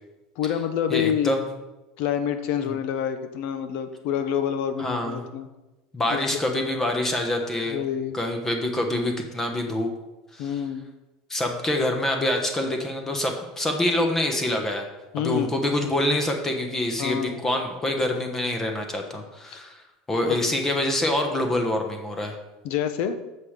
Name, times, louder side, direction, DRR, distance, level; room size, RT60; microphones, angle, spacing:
voice 1, 0.4-1.3 2.0-5.5 6.1-6.4 7.7-8.2 10.4-10.9 15.1-15.6 17.0-17.4 19.5-19.6 20.2-20.4 22.6-23.2, left 9 dB, 65° left, 9 dB, 0.9 m, -27 dB
voice 2, 0.9-1.4 2.6-2.7 4.8-5.2 5.9-7.8 8.1-9.9 10.3-10.5 11.3-14.9 15.2-22.4, left 1 dB, 15° left, 4 dB, 1.1 m, -26 dB
6.5 x 5.3 x 6.6 m, 1.1 s
supercardioid pair, 130°, 3 cm